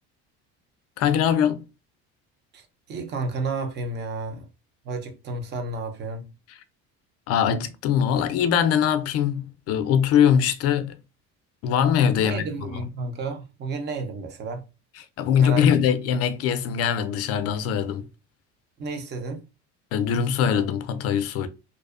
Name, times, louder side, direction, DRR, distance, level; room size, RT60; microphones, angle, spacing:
voice 1, 1.0-1.6 7.3-11.0 11.6-12.7 15.2-18.1 19.9-21.5, left 8 dB, 50° left, 0.4 m, -22 dB
voice 2, 2.5-4.5 4.8-6.3 12.1-14.6 15.4-15.6 18.8-19.4, right 3 dB, 35° right, 0.5 m, -32 dB
2.6 x 2.0 x 2.3 m
cardioid pair, 130°, 30 cm